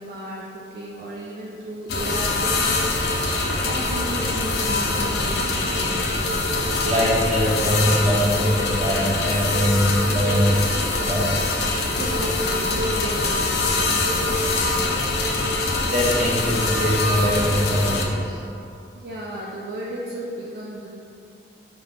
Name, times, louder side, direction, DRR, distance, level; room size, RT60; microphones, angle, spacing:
voice 1, 0.0-2.8 3.6-6.1 12.0-15.2 18.9-20.9, right 1 dB, 55° right, -4 dB, 0.4 m, -34 dB
sound 1, 1.9-18.0, left 2 dB, 65° left, 0.4 m, -23 dB
voice 2, 6.8-10.6 11.0-11.5 15.8-18.4, equal, 40° right, -5 dB, 0.8 m, -22 dB
5.2 x 2.2 x 3.5 m, 2.6 s
head